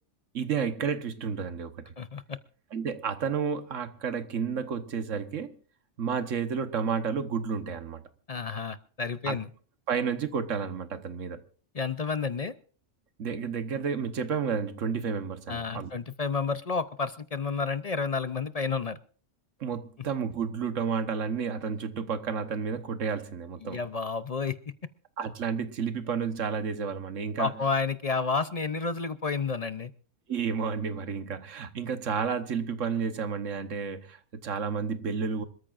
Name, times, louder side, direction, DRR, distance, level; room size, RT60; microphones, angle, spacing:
voice 1, 0.3-1.9 2.7-5.5 6.0-8.0 9.3-9.4 9.9-11.4 13.2-15.9 19.6-23.8 25.2-27.5 30.3-35.4, right 6 dB, 90° right, 1.5 m, -31 dB
voice 2, 2.0-2.4 8.3-9.5 11.7-12.5 15.5-19.0 23.6-24.7 27.4-29.9, left 5 dB, 40° left, 0.6 m, -30 dB
26.0 x 13.5 x 2.5 m
omnidirectional pair, 1.3 m